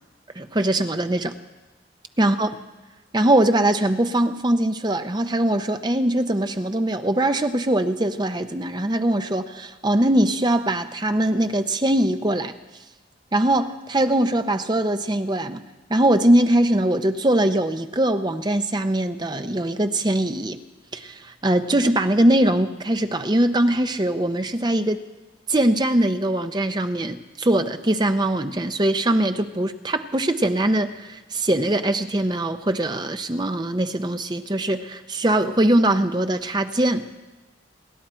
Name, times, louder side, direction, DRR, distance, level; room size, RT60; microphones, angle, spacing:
voice 1, 0.4-1.3 2.2-2.5 3.1-12.5 13.3-15.6 15.9-20.6 20.9-25.0 25.5-37.1, right 1 dB, 25° right, 8 dB, 0.7 m, -21 dB
27.5 x 11.5 x 4.4 m, 1.1 s
head